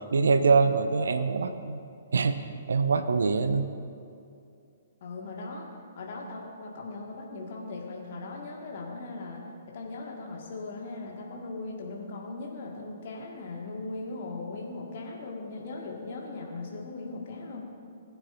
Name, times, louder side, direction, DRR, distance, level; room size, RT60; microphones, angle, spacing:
voice 1, 0.1-1.8 2.1-2.4 2.7-3.7, right 4 dB, 65° right, 10 dB, 0.6 m, -24 dB
voice 2, 5.0-5.7 6.0-17.7, left 3 dB, 45° left, -1 dB, 1.9 m, -39 dB
20.0 x 9.0 x 2.7 m, 2.5 s
figure-of-eight pair, 120°, 0 cm